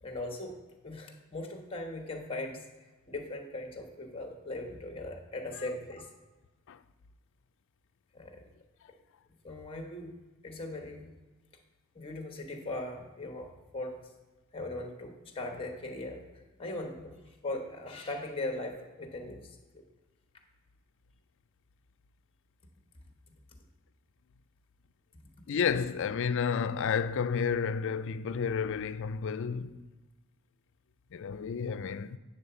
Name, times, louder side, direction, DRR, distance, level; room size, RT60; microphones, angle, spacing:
voice 1, 0.0-0.6 0.8-2.6 3.1-6.1 8.1-8.4 9.4-10.1 10.4-11.1 11.9-14.0 14.5-16.2 16.6-17.2 17.4-19.8, left 2 dB, 25° left, 1.1 m, -39 dB
voice 2, 25.5-29.8 31.1-32.2, left 6 dB, 60° left, 0.4 m, -31 dB
8.9 x 3.8 x 6.8 m
head